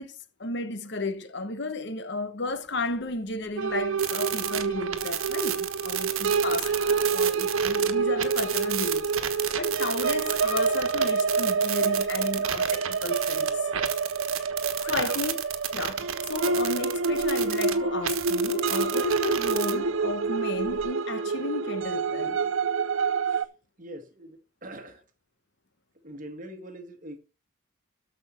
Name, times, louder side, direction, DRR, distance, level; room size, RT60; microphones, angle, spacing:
voice 1, 0.0-6.7 7.1-13.7 14.9-15.4 15.7-22.5, left 2 dB, 55° left, 1.0 m, -33 dB
sound 1, 2.4-20.8, left 3 dB, 85° left, 1.9 m, -50 dB
sound 2, 3.6-23.4, right 5 dB, 70° right, 0.6 m, -27 dB
sound 3, 4.0-7.9 8.2-17.8 18.0-19.7, right 10 dB, 85° right, 1.3 m, -32 dB
voice 2, 23.8-25.0 26.0-27.2, right 1 dB, 40° right, 1.5 m, -43 dB
13.5 x 5.5 x 4.3 m
head